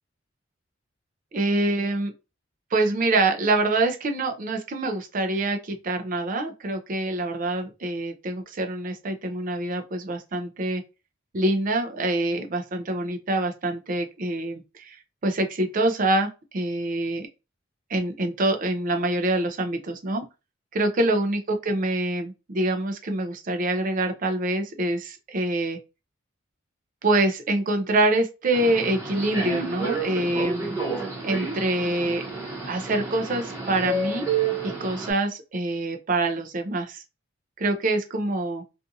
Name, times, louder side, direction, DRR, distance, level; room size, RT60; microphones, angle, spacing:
voice 1, 1.3-2.1 2.7-10.8 11.3-15.0 15.2-17.3 17.9-20.3 20.7-25.8 27.0-32.3 32.7-34.3 34.6-37.0 37.6-38.6, right 2 dB, 45° right, 0.5 m, -25 dB
Subway metro underground, 28.5-35.1, right 4 dB, 15° right, 1.0 m, -30 dB
2.5 x 2.4 x 2.7 m
head